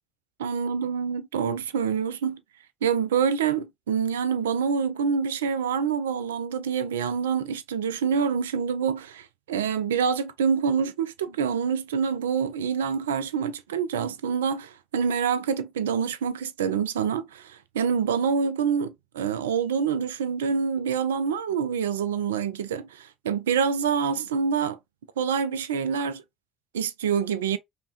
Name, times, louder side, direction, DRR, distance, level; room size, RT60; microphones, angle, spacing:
voice 1, 0.4-2.4 2.8-24.8 25.2-26.2 26.7-27.6, right 6 dB, 75° right, 0.4 m, -26 dB
5.2 x 2.2 x 2.8 m
figure-of-eight pair, 55°, 0 cm